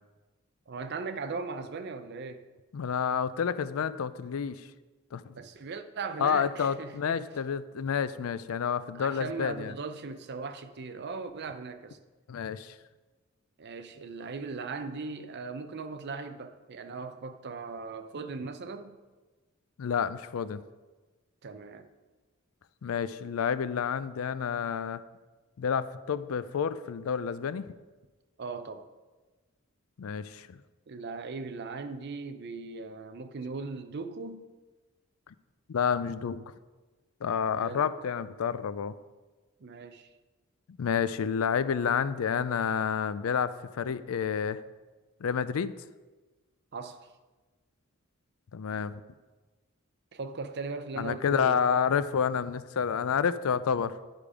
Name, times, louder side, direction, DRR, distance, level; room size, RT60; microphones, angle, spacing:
voice 1, 0.7-2.4 5.3-7.2 8.9-12.0 13.6-19.0 21.4-21.9 28.4-28.9 30.9-34.5 37.6-37.9 39.6-40.1 46.7-47.1 50.1-51.6, right 4 dB, 55° right, 0.6 m, -38 dB
voice 2, 2.7-4.6 5.1-5.3 6.2-9.7 12.3-12.7 19.8-20.6 22.8-25.0 25.6-27.7 30.0-30.6 35.7-36.4 37.2-38.9 40.8-44.6 45.2-45.7 48.5-48.9 51.0-53.9, left 7 dB, 85° left, 0.4 m, -29 dB
10.5 x 5.1 x 4.9 m
head